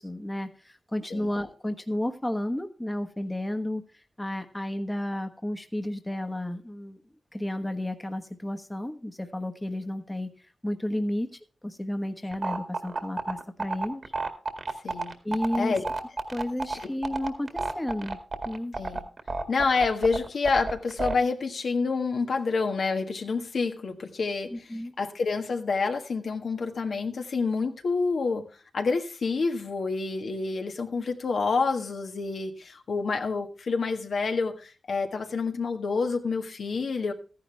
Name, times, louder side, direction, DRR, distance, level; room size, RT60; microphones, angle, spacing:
voice 1, 0.0-3.8 4.2-7.0 7.3-10.3 10.6-11.3 11.6-14.0 15.2-15.7 16.3-18.2 18.4-18.7 24.5-24.9, left 1 dB, 10° left, 6 dB, 1.3 m, -32 dB
sound 1, 12.3-21.1, right 3 dB, 50° right, 2.0 m, -30 dB
voice 2, 15.6-15.9 16.7-16.9 18.8-19.0 19.5-28.4 28.7-37.1, left 4 dB, 70° left, 4 dB, 1.6 m, -28 dB
14.0 x 10.5 x 3.4 m, 0.34 s
cardioid pair, 75°, 0 cm